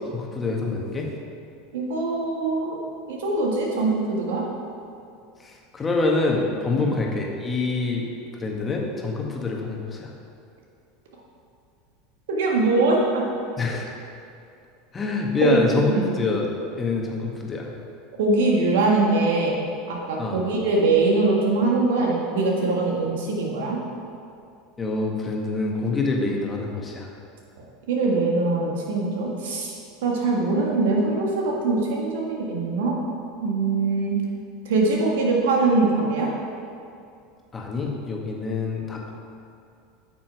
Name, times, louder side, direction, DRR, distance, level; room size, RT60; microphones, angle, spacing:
voice 1, 0.1-1.1 5.7-8.0 8.4-10.1 13.6-13.8 14.9-16.5 16.8-17.7 20.2-20.4 24.8-27.1 37.5-39.1, left 3 dB, 25° left, 0 dB, 1.6 m, -26 dB
voice 2, 1.7-2.8 3.1-4.4 6.8-7.0 12.3-13.2 15.4-15.6 15.9-16.1 18.2-19.6 19.9-23.8 27.9-33.0 33.4-34.2 34.6-36.3, right 3 dB, 75° right, -1 dB, 1.7 m, -22 dB
8.9 x 6.1 x 4.8 m, 2.5 s
hypercardioid pair, 90°, 0 cm